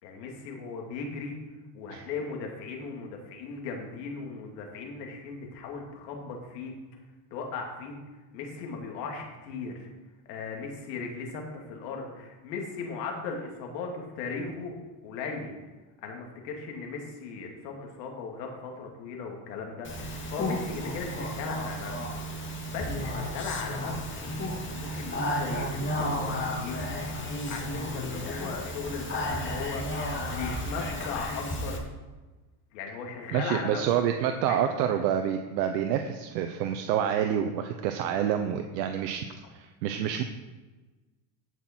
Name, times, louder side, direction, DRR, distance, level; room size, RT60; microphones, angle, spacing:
voice 1, 0.0-1.4 1.7-6.7 7.3-8.0 8.3-9.9 10.3-14.8 15.0-15.5 16.0-21.9 22.7-26.9 27.5-31.8 32.7-33.8 34.4-34.6, left 4 dB, 80° left, 1 dB, 2.7 m, -37 dB
Speech, 19.8-31.8, left 1 dB, 25° left, 2.4 m, -33 dB
voice 2, 33.3-39.2 39.5-40.2, right 9 dB, 80° right, 6 dB, 1.0 m, -28 dB
14.5 x 6.1 x 4.5 m, 1.2 s
supercardioid pair, 100°, 50 cm